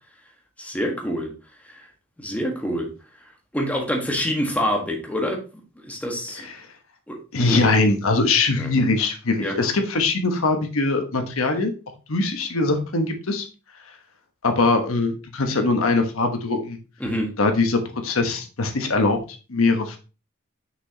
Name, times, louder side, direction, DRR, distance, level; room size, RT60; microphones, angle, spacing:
voice 1, 0.6-1.3 1.6-1.9 2.2-2.9 3.5-5.4 5.8-6.5 7.1-7.6 8.6-8.7 9.4-9.6 17.0-17.3, equal, 5° left, 0 dB, 1.4 m, -26 dB
voice 2, 7.3-11.7 12.1-13.5 14.4-16.8 17.4-19.2 19.5-20.0, left 3 dB, 80° left, 5 dB, 1.2 m, -21 dB
6.1 x 5.9 x 2.9 m, 0.33 s
head